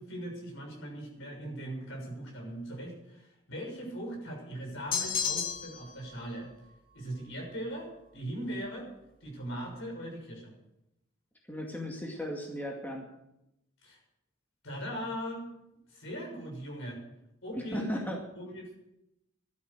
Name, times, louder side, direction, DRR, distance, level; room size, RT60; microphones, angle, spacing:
voice 1, 0.0-6.5 6.9-8.9 9.2-10.5 13.8-14.0 14.6-15.4 15.9-17.0 17.4-18.0 18.3-18.8, equal, 65° left, 1 dB, 6.7 m, -39 dB
sound 1, 4.9-5.9, left 6 dB, 45° left, 2.1 m, -31 dB
voice 2, 11.5-13.0 17.7-18.2, equal, 10° left, 0 dB, 2.2 m, -35 dB
15.5 x 12.5 x 6.7 m, 0.86 s
head